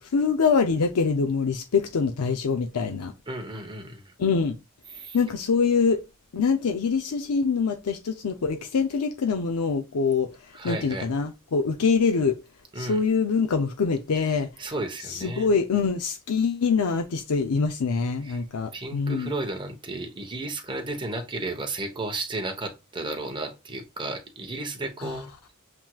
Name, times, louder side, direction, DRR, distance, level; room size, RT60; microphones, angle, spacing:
voice 1, 0.1-3.1 4.2-4.5 5.1-6.0 6.3-10.3 10.6-12.4 12.8-14.5 15.1-19.3 25.0-25.1, left 5 dB, 80° left, 0.5 m, -24 dB
voice 2, 3.3-4.0 4.9-5.2 10.5-11.1 12.7-13.0 14.2-15.5 18.2-18.4 18.7-25.5, right 2 dB, 20° right, 1.0 m, -33 dB
7.2 x 3.0 x 2.3 m
head